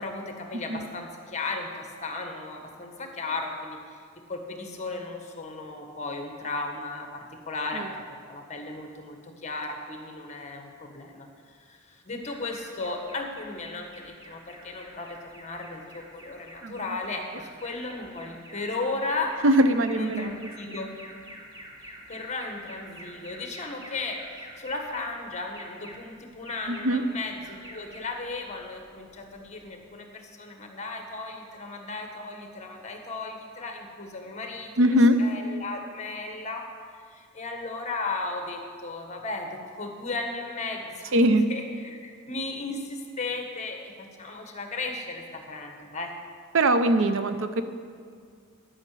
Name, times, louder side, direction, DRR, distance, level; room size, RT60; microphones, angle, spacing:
voice 1, 0.0-19.4 19.9-20.9 21.8-34.8 35.2-36.7 37.1-46.1, left 3 dB, 35° left, 3 dB, 1.5 m, -35 dB
voice 2, 0.5-0.9 7.7-7.9 16.6-17.0 19.4-20.8 26.7-27.1 34.8-35.2 41.1-41.5 46.5-47.6, right 1 dB, 65° right, 10 dB, 0.6 m, -22 dB
Alarm, 12.2-29.8, equal, 20° right, 1.8 m, -48 dB
12.0 x 5.9 x 8.3 m, 2.1 s
head